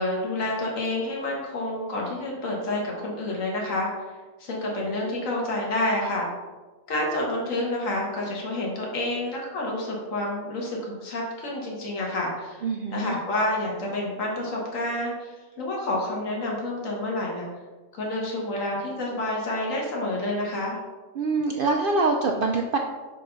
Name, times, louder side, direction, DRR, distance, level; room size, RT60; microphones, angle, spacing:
voice 1, 0.0-3.9 4.4-6.3 6.9-12.6 12.9-17.5 17.9-20.8, left 1 dB, 65° left, -2 dB, 1.7 m, -29 dB
voice 2, 12.6-13.2 21.2-22.8, right 3 dB, 85° right, 1 dB, 0.4 m, -24 dB
5.5 x 5.0 x 3.9 m, 1.3 s
omnidirectional pair, 1.5 m